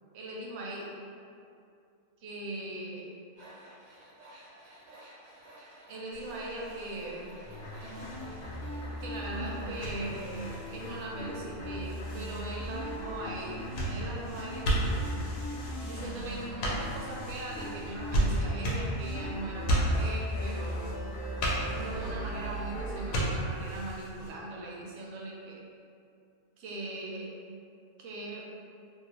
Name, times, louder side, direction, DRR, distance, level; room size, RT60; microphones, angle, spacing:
voice 1, 0.1-0.9 2.2-3.1 5.9-7.3 9.0-15.2 15.9-20.9 21.7-25.6 26.6-27.3 28.0-28.5, right 2 dB, 65° right, -3 dB, 0.8 m, -40 dB
Tools, 3.4-11.3, equal, 80° right, 1.1 m, -52 dB
sound 1, 6.1-24.3, right 1 dB, 90° left, 1.0 m, -35 dB
sound 2, 7.4-23.3, equal, 60° left, 0.6 m, -38 dB
2.8 x 2.0 x 2.9 m, 2.4 s
omnidirectional pair, 1.3 m